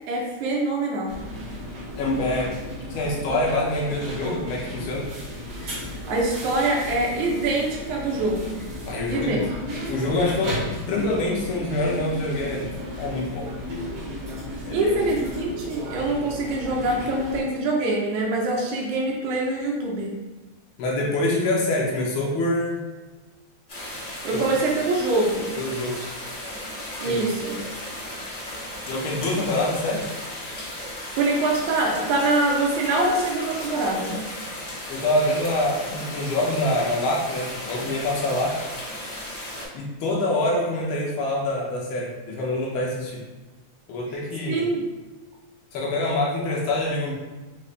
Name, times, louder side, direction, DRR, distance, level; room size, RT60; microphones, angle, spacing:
voice 1, 0.1-1.2 6.1-8.6 9.1-9.5 14.7-20.1 24.2-25.6 27.0-27.6 31.2-34.2 44.5-44.8, right 2 dB, 75° right, -2 dB, 2.1 m, -24 dB
sound 1, 1.1-17.4, left 1 dB, 55° right, 1.5 m, -34 dB
voice 2, 2.0-2.6 2.9-5.1 8.8-9.5 9.9-12.7 13.0-13.5 14.6-14.9 20.8-22.8 24.3-24.4 25.6-26.0 27.0-27.2 28.9-30.1 34.9-38.6 39.7-43.2 43.9-44.6 45.7-47.1, left 1 dB, 75° left, -3 dB, 1.2 m, -25 dB
sound 2, 23.7-39.6, left 1 dB, 45° left, 0.9 m, -35 dB
5.4 x 3.2 x 2.5 m, 1.2 s
omnidirectional pair, 3.5 m